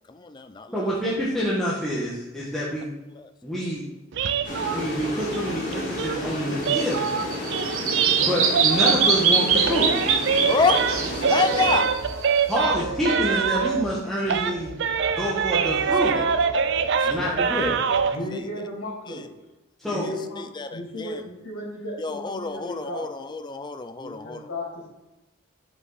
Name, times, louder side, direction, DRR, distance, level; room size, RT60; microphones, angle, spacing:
voice 1, 0.1-0.9 3.1-3.3 7.9-8.3 10.5-12.0 16.1-16.3 16.9-17.4 18.3-18.5 19.1-19.3 19.9-21.3 22.0-24.5, left 4 dB, 20° left, 9 dB, 0.4 m, -29 dB
voice 2, 0.7-2.9 3.4-3.8 4.7-7.2 8.2-9.9 12.5-14.7 15.1-16.2 17.0-17.8 19.8-20.1, equal, ahead, -8 dB, 1.2 m, -27 dB
sound 1, 4.1-9.2 9.5-14.0 14.3-18.2, right 6 dB, 55° right, 0.4 m, -25 dB
sound 2, 4.4-11.8, left 1 dB, 40° left, 2.2 m, -32 dB
Bird vocalization bird call bird song, 6.6-12.5, right 6 dB, 85° right, 0.9 m, -23 dB
voice 3, 18.0-19.3 19.8-20.4 20.7-23.1 24.0-24.9, left 1 dB, 85° left, -3 dB, 2.7 m, -35 dB
7.7 x 5.3 x 4.0 m, 1.0 s
head